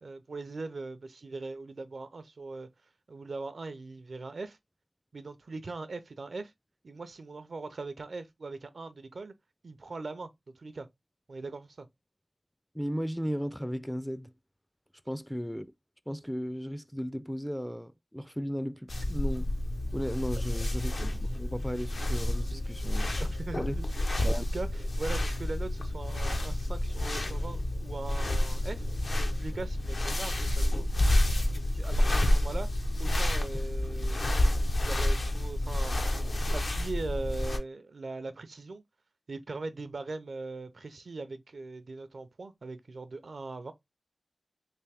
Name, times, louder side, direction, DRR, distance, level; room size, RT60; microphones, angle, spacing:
voice 1, 0.0-2.7 3.1-4.6 5.1-6.5 6.8-9.3 9.6-10.9 11.3-11.9 22.5-22.6 23.2-23.9 24.3-28.9 29.1-30.8 31.5-32.7 33.0-34.2 34.8-36.1 36.5-38.8 39.3-43.7, right 3 dB, 75° right, 0.5 m, -40 dB
voice 2, 12.7-14.3 15.1-15.7 16.1-19.5 19.9-23.1 23.6-23.8 24.2-24.5, equal, ahead, 0.3 m, -35 dB
sound 1, 18.9-37.6, left 1 dB, 65° left, 0.6 m, -29 dB
3.4 x 2.6 x 3.3 m
cardioid pair, 50°, 0 cm